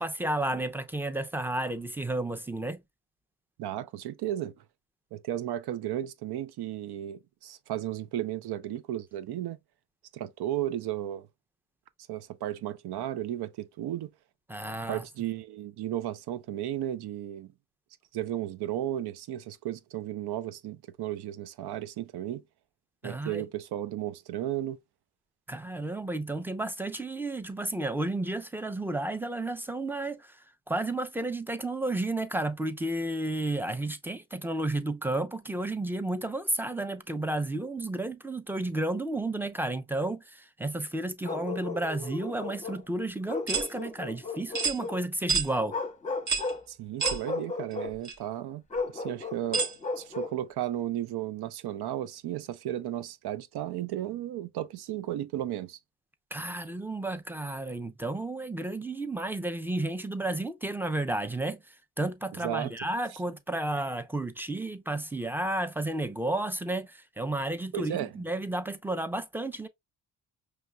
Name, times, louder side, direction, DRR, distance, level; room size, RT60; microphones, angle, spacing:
voice 1, 0.0-2.8 14.5-15.0 23.0-23.4 25.5-45.8 56.3-69.7, right 2 dB, 5° right, 0.6 m, -32 dB
voice 2, 3.6-4.5 5.1-9.6 10.1-11.3 12.1-14.1 14.9-17.5 18.1-22.4 23.0-24.8 46.7-48.6 48.9-49.7 50.0-55.8 62.4-62.7 67.7-68.1, right 12 dB, 75° right, 0.7 m, -34 dB
Bark, 41.2-42.8 43.3-45.0 45.7-46.6 47.0-47.9 48.7-50.4, left 3 dB, 15° left, 1.0 m, -35 dB
sound 1, 43.5-43.7 44.5-44.8 45.3-45.5 46.3-46.5 47.0-47.2 48.0-48.1 49.5-49.7, right 5 dB, 45° right, 1.3 m, -28 dB
5.1 x 3.3 x 2.3 m
cardioid pair, 80°, 40 cm